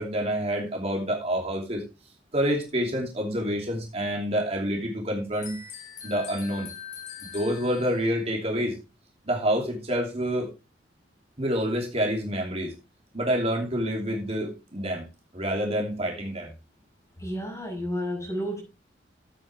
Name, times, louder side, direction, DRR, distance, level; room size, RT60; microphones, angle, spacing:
voice 1, 0.0-1.8 2.3-5.6 6.0-6.7 7.3-8.8 9.2-10.5 11.4-12.7 13.1-15.1 15.3-16.5, equal, 35° right, 2.8 m, -27 dB
sound 1, 5.3-8.2, left 8 dB, 45° left, 2.0 m, -42 dB
voice 2, 17.2-18.6, equal, 20° left, 5.8 m, -31 dB
13.0 x 8.7 x 3.4 m
head